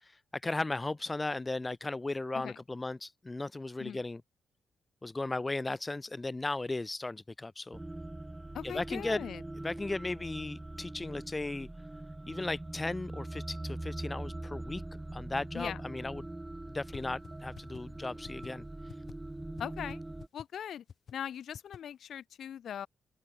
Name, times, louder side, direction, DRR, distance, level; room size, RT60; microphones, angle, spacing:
voice 1, 0.0-4.2 5.0-7.8 8.6-9.3 9.6-11.7 12.3-14.8 15.1-16.2 16.7-18.6, left 2 dB, 15° left, 0.5 m, -36 dB
sound 1, 7.7-20.3, right 2 dB, 10° right, 1.2 m, -42 dB
voice 2, 8.5-9.4 15.5-15.8 19.6-20.0 20.3-20.8 21.1-22.9, left 9 dB, 70° left, 0.7 m, -40 dB
sound 2, 16.9-17.0 17.2-17.3 17.6-17.8 18.2-18.5 18.9-19.1 19.6-19.7 19.9-20.0 20.2-20.5 20.9-21.1 21.5-21.8, left 7 dB, 50° left, 3.8 m, -46 dB
open air
cardioid pair, 130°, 0 cm